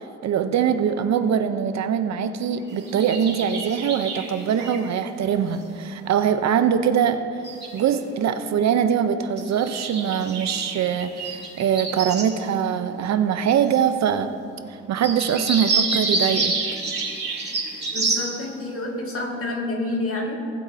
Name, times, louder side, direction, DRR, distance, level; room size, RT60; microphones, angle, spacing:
voice 1, 0.2-7.2 7.7-14.3 14.9-16.5, right 8 dB, 65° right, 9 dB, 0.7 m, -22 dB
sound 1, 0.7-0.9 1.3-1.4 2.0-4.9 5.2-5.8 6.4-7.1 7.4-8.5 8.8-8.9 9.2-12.3 12.7-12.8 13.0-13.1 13.6-13.7 14.6-14.7 14.9-18.3, right 3 dB, 35° right, 2.7 m, -28 dB
voice 2, 17.9-20.5, left 2 dB, 50° left, 0 dB, 2.0 m, -28 dB
18.5 x 8.0 x 2.7 m, 2.4 s
cardioid pair, 90°, 30 cm